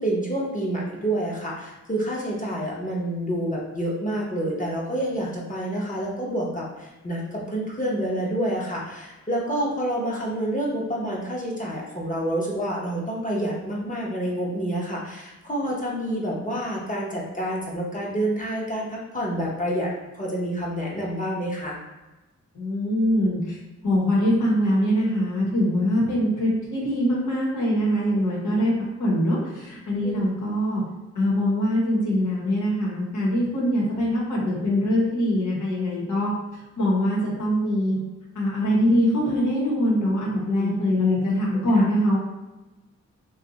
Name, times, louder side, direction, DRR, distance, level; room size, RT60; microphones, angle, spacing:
voice 1, 0.0-21.8 30.0-30.2 40.6-40.7 41.5-41.8, right 1 dB, 25° left, -4 dB, 0.8 m, -28 dB
voice 2, 22.5-23.5 23.8-28.7 29.0-30.8 31.1-36.3 36.8-38.0 38.3-42.2, equal, 80° left, -5 dB, 1.1 m, -23 dB
2.5 x 2.4 x 4.0 m, 1.1 s
wide cardioid pair, 150°, 29 cm